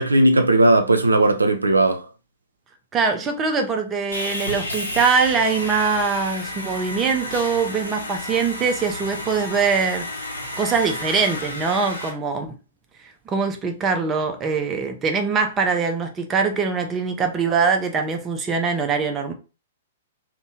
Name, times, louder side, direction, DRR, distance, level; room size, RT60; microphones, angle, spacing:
voice 1, 0.0-2.0, right 2 dB, 80° right, 0.4 m, -17 dB
voice 2, 2.9-10.3 10.6-12.6 13.3-19.3, right 5 dB, 20° right, 0.4 m, -22 dB
Sawing, 4.1-12.1, left 1 dB, 80° left, 0.8 m, -32 dB
2.6 x 2.1 x 2.7 m
figure-of-eight pair, 110°, 0 cm